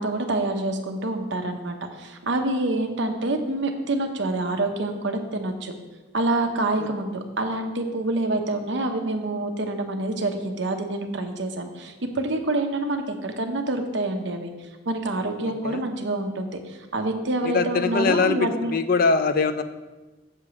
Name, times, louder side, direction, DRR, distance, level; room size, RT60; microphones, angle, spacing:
voice 1, 0.0-5.7 6.1-18.7, right 2 dB, 65° right, 5 dB, 0.9 m, -27 dB
voice 2, 15.4-15.8 17.4-19.6, left 4 dB, 50° left, 11 dB, 0.5 m, -23 dB
6.8 x 5.0 x 7.0 m, 1.2 s
head